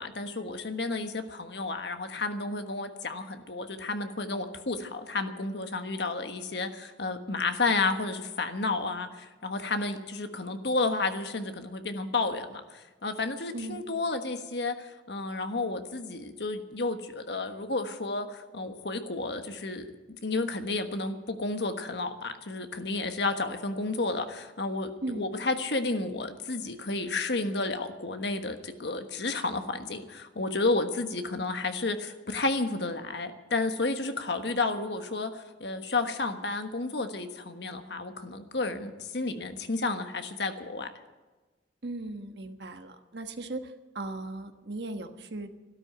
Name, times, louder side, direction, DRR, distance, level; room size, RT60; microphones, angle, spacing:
voice 1, 0.0-19.9 20.2-24.9 25.2-40.9, left 3 dB, 65° left, 7 dB, 1.4 m, -31 dB
voice 2, 13.5-13.8 25.0-25.3 41.8-45.5, right 2 dB, 65° right, 7 dB, 1.4 m, -37 dB
13.5 x 12.5 x 7.9 m, 1.2 s
head